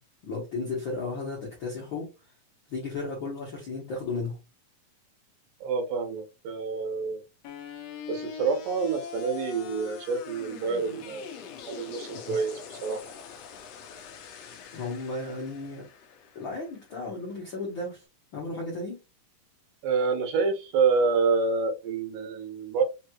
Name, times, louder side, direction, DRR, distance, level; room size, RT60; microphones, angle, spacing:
voice 1, 0.2-2.1 2.7-4.4 12.3-12.4 14.7-15.8 16.3-18.0 18.3-19.0, left 3 dB, 70° left, 1.1 m, -34 dB
voice 2, 5.6-7.2 8.1-11.3 11.7-13.0 19.8-22.8, right 4 dB, 75° right, 2.4 m, -27 dB
sound 1, 7.4-17.5, left 7 dB, 85° left, 1.4 m, -43 dB
5.5 x 3.0 x 2.3 m
omnidirectional pair, 4.0 m